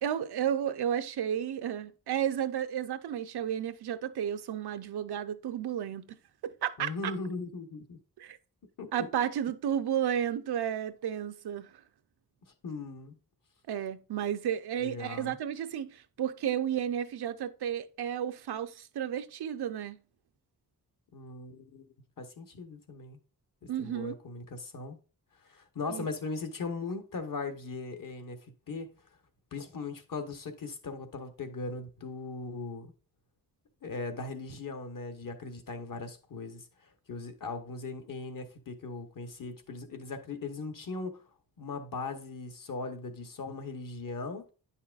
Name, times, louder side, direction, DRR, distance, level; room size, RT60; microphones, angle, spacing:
voice 1, 0.0-6.2 6.4-7.1 8.2-8.4 8.9-11.7 13.7-20.0 23.7-24.2 25.9-26.1, right 9 dB, 90° right, 0.6 m, -32 dB
voice 2, 6.8-8.0 8.8-8.9 12.6-13.2 14.8-15.4 21.1-21.8 22.2-23.2 23.6-25.0 25.5-28.4 28.7-28.9 29.5-32.9 33.8-36.6 37.1-41.2 41.6-44.5, left 3 dB, 60° left, 1.1 m, -39 dB
9.4 x 5.6 x 2.4 m
wide cardioid pair, 145°, 38 cm